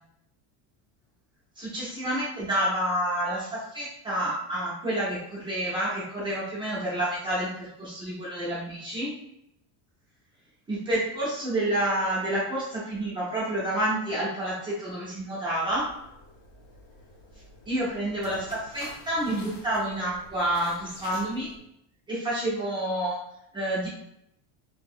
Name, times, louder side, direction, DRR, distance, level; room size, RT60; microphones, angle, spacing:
voice 1, 1.6-9.1 10.7-15.9 17.7-21.5 22.1-23.2 23.5-23.9, right 1 dB, 10° right, -10 dB, 0.3 m, -29 dB
sound 1, 15.6-21.6, left 2 dB, 45° left, 0.5 m, -48 dB
2.7 x 2.6 x 2.4 m, 0.80 s
cardioid pair, 180°, 47 cm